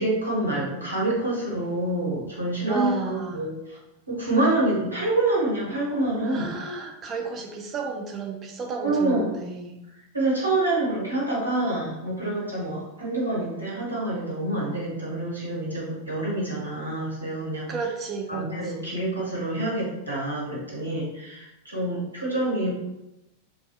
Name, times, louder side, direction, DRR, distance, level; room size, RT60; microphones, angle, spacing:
voice 1, 0.0-3.8 4.1-6.5 8.8-9.3 10.1-17.7 18.3-22.7, right 2 dB, 85° right, -6 dB, 0.9 m, -27 dB
voice 2, 2.7-3.5 6.2-9.8 17.7-18.9, right 4 dB, 25° right, 2 dB, 0.4 m, -32 dB
2.6 x 2.2 x 2.3 m, 0.92 s
figure-of-eight pair, 90°, 0 cm